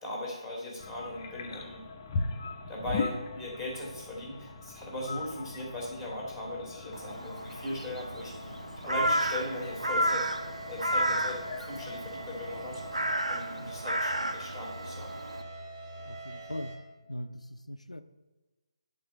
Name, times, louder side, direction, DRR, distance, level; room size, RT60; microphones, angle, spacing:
voice 1, 0.0-1.8 2.7-8.5 8.8-10.3 10.6-15.1, left 1 dB, 5° right, -3 dB, 1.6 m, -38 dB
sound 1, 0.8-13.2, left 3 dB, 30° left, 0.6 m, -40 dB
Crow, 6.9-15.4, right 1 dB, 80° right, 0.6 m, -32 dB
sound 2, 9.4-16.8, right 2 dB, 30° right, 1.7 m, -45 dB
voice 2, 16.1-16.8 17.1-18.0, left 1 dB, 85° left, 9 dB, 0.4 m, -40 dB
9.4 x 3.9 x 5.1 m, 1.2 s
figure-of-eight pair, 150°, 3 cm